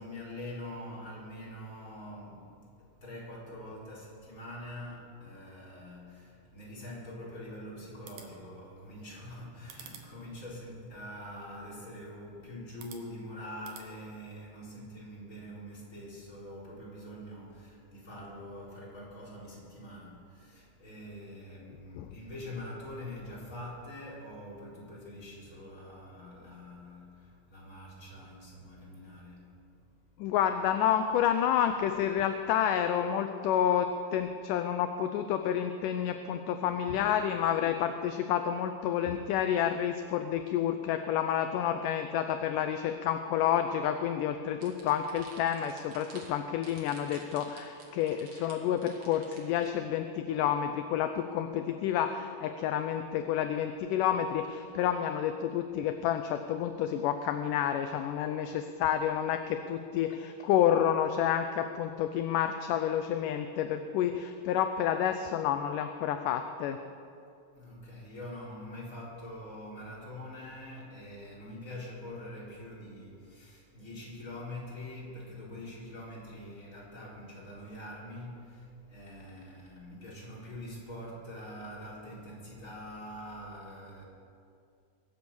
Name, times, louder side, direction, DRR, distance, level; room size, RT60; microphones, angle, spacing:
voice 1, 0.0-29.6 67.5-84.1, left 1 dB, 20° left, -6 dB, 4.2 m, -44 dB
sound 1, 7.9-13.9, right 7 dB, 85° right, 3.2 m, -55 dB
voice 2, 30.2-66.8, left 9 dB, 80° left, 8 dB, 2.1 m, -29 dB
sound 2, 44.6-49.7, right 3 dB, 50° right, 3.3 m, -51 dB
24.0 x 8.0 x 7.0 m, 2.5 s
omnidirectional pair, 4.0 m